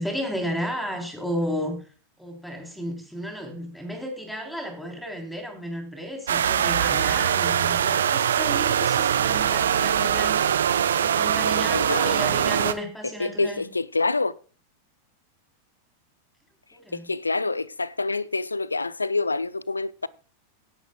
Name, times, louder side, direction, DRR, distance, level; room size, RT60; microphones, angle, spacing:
voice 1, 0.0-1.8 2.2-10.5 11.0-13.7 16.7-17.1, equal, ahead, 3.4 m, -33 dB
sound 1, 6.3-12.7, right 9 dB, 65° right, 0.7 m, -22 dB
voice 2, 13.2-14.4 16.9-20.1, left 3 dB, 80° left, 0.5 m, -26 dB
17.0 x 10.5 x 2.3 m
figure-of-eight pair, 90°, 0 cm